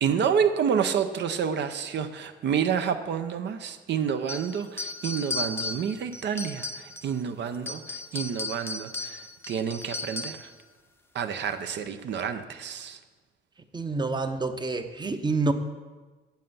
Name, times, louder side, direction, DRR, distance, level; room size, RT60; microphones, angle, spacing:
voice 1, 0.0-9.2 9.5-10.5 11.1-13.0, right 7 dB, 65° right, 8 dB, 0.6 m, -29 dB
sound 1, 4.3-7.2 7.5-10.5, left 3 dB, 10° left, 0.6 m, -35 dB
voice 2, 13.7-15.5, right 3 dB, 20° right, 8 dB, 0.7 m, -27 dB
7.7 x 7.3 x 5.5 m, 1.3 s
cardioid pair, 90°, 20 cm